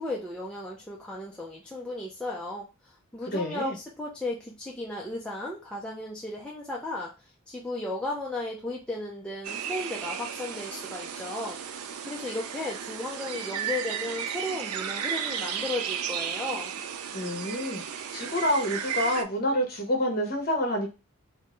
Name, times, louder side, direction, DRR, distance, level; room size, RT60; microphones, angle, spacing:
voice 1, 0.0-7.1 7.5-11.6 12.1-16.7, left 2 dB, 5° left, -3 dB, 0.4 m, -35 dB
voice 2, 3.3-3.8 17.1-20.9, left 1 dB, 40° left, 2 dB, 1.1 m, -28 dB
sound 1, 9.4-19.2, right 8 dB, 85° right, 0.4 m, -34 dB
3.7 x 2.1 x 3.8 m, 0.28 s
head